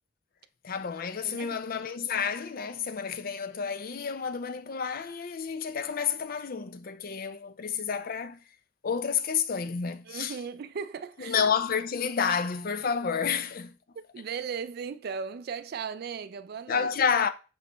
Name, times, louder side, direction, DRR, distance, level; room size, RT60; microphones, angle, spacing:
voice 1, 0.6-8.4 8.8-10.4 11.2-13.7 16.7-17.3, left 6 dB, 50° left, 0.5 m, -30 dB
voice 2, 1.2-1.6 10.1-11.4 14.1-16.9, right 6 dB, 55° right, 0.4 m, -37 dB
7.9 x 4.0 x 3.4 m
head